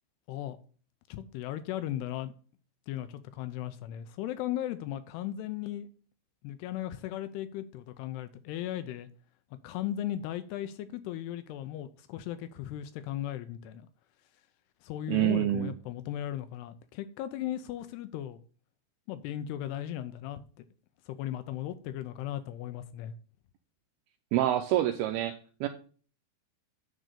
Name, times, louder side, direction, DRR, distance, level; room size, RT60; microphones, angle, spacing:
voice 1, 1.1-2.3 2.9-5.9 6.4-9.1 9.6-13.9 14.8-18.4 19.1-20.4 21.1-23.1, left 12 dB, 85° left, 2.5 m, -37 dB
voice 2, 15.1-15.7 24.3-25.7, right 13 dB, 85° right, 2.2 m, -27 dB
9.9 x 4.0 x 6.6 m
omnidirectional pair, 5.0 m